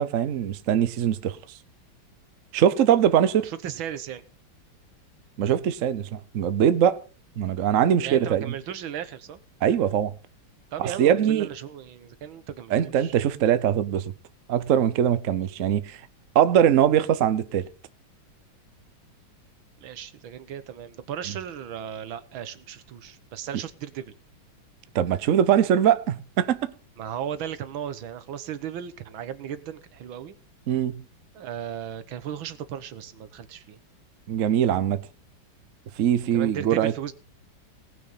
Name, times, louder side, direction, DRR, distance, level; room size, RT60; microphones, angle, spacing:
voice 1, 0.0-1.4 2.5-3.5 5.4-7.0 7.4-8.5 9.6-10.1 10.8-11.5 12.7-14.1 14.5-16.0 16.3-17.7 24.9-26.7 30.7-31.0 34.3-35.0 36.0-36.9, right 9 dB, 55° right, 0.9 m, -22 dB
voice 2, 3.4-4.2 8.0-9.4 10.7-13.1 19.8-24.1 27.0-30.3 31.3-33.8 36.3-37.1, right 9 dB, 85° right, 1.9 m, -36 dB
18.5 x 6.3 x 5.7 m
omnidirectional pair, 2.1 m